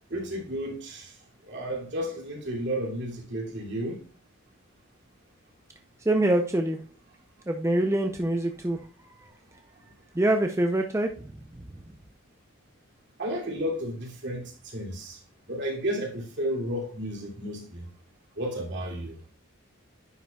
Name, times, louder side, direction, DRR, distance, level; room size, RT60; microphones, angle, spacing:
voice 1, 0.1-1.1 1.5-4.0 13.2-15.2 15.5-17.8 18.4-19.1, equal, 60° right, 2.7 m, -32 dB
voice 2, 6.1-6.8 7.5-8.8 10.1-11.3, right 1 dB, 15° right, 0.5 m, -25 dB
9.9 x 5.4 x 2.3 m
head